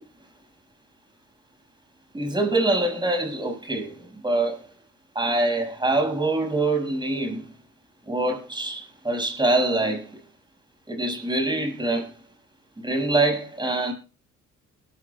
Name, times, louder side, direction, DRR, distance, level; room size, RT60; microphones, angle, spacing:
voice 1, 2.1-3.9 4.2-4.6 5.1-7.4 8.1-10.1 10.9-12.1 12.8-13.9, right 2 dB, 15° right, 6.3 m, -24 dB
22.0 x 13.0 x 2.4 m
cardioid pair, 90°, 30 cm